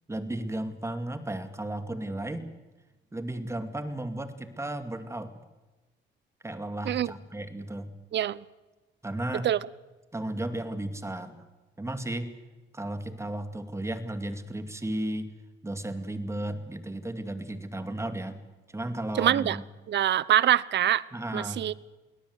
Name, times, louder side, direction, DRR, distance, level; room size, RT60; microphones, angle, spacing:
voice 1, 0.1-2.5 3.1-5.4 6.4-7.9 9.0-9.5 10.1-11.4 11.8-12.3 12.7-15.3 15.6-18.4 18.7-19.7 21.1-21.6, right 1 dB, 15° right, 2.4 m, -34 dB
voice 2, 19.2-19.6 19.9-21.0 21.3-21.7, right 11 dB, 60° right, 0.8 m, -24 dB
22.5 x 18.0 x 8.0 m
cardioid pair, 90°, 20 cm